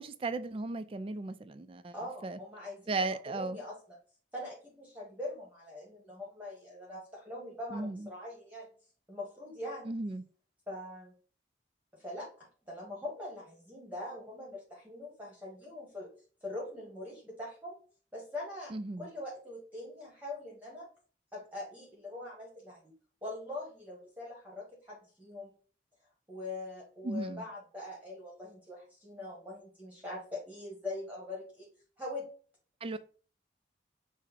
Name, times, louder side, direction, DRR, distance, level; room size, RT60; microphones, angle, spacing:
voice 1, 0.0-1.9 2.2-2.4 2.9-3.6 7.7-8.1 9.9-10.2 18.7-19.1 27.0-27.4 32.8-33.0, right 3 dB, 30° right, 0.3 m, -36 dB
voice 2, 1.9-3.8 4.3-8.7 9.1-9.9 10.7-11.1 11.9-12.3 12.7-16.1 16.4-17.8 18.1-20.9 21.3-22.8 23.2-25.5 26.3-31.7 32.0-32.3 32.9-33.0, left 1 dB, 10° right, 1.1 m, -42 dB
5.9 x 2.1 x 4.2 m
head